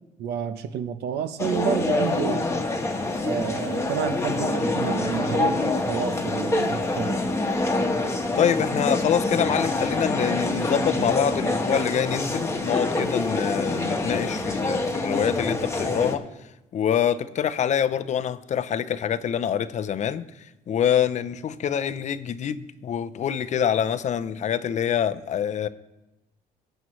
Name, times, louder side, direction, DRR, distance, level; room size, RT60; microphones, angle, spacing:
voice 1, 0.2-2.5 3.2-7.2, right 8 dB, 75° right, 0.8 m, -29 dB
sound 1, 1.4-16.2, left 2 dB, 15° left, 1.1 m, -26 dB
voice 2, 8.4-16.3 16.7-20.2 20.7-25.7, left 9 dB, 45° left, 0.6 m, -25 dB
17.5 x 9.0 x 3.1 m
cardioid pair, 110°, 17 cm